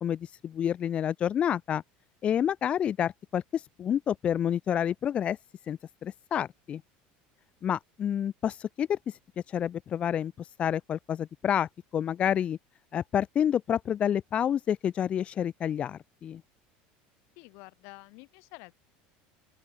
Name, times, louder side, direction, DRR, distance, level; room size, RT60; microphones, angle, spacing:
voice 1, 0.0-1.8 2.2-5.4 5.7-6.8 7.6-9.2 9.5-12.6 12.9-16.4, left 9 dB, 30° left, 0.5 m, -29 dB
voice 2, 17.4-18.7, left 30 dB, 65° left, 3.0 m, -49 dB
open air
cardioid pair, 150°, 4 cm